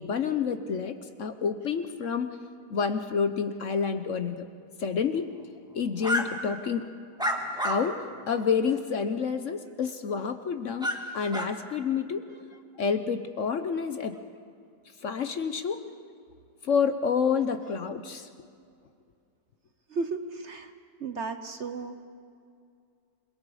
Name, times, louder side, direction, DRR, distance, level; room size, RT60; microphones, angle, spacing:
voice 1, 0.0-2.4 2.7-4.5 4.8-5.3 5.7-6.9 7.6-12.3 12.8-14.2 15.0-15.8 16.6-18.3, left 6 dB, 55° left, 9 dB, 1.0 m, -29 dB
sound 1, 6.0-6.2 7.2-7.8 8.3-8.4 10.8-11.0 11.3-11.5, equal, 5° right, 1.6 m, -28 dB
voice 2, 19.9-20.7 21.0-22.1, right 4 dB, 50° right, 8 dB, 1.0 m, -34 dB
28.0 x 21.5 x 4.9 m, 2.3 s
omnidirectional pair, 1.8 m